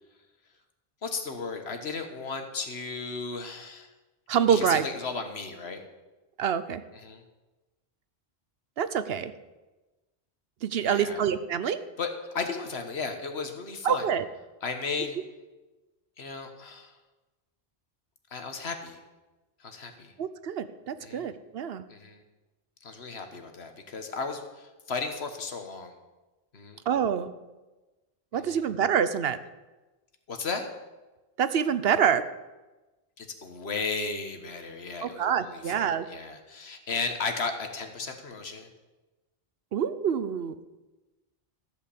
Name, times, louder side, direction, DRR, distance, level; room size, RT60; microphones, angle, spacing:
voice 1, 1.0-3.9 4.5-5.8 7.0-7.2 10.8-11.2 12.0-12.1 12.3-14.0 14.6-15.2 16.2-16.9 18.3-19.0 19.6-20.1 21.0-21.2 21.9-22.2 22.8-24.4 24.9-25.9 26.5-26.8 28.5-28.6 30.3-30.7 33.2-38.7, left 4 dB, 75° left, 6 dB, 1.6 m, -35 dB
voice 2, 4.3-4.8 6.4-6.8 8.8-9.3 10.6-11.8 13.8-14.2 20.2-21.8 26.9-27.3 28.3-29.4 31.4-32.2 35.0-36.1 39.7-40.5, right 8 dB, 70° right, 13 dB, 0.9 m, -26 dB
14.5 x 5.2 x 8.4 m, 1.1 s
omnidirectional pair, 1.1 m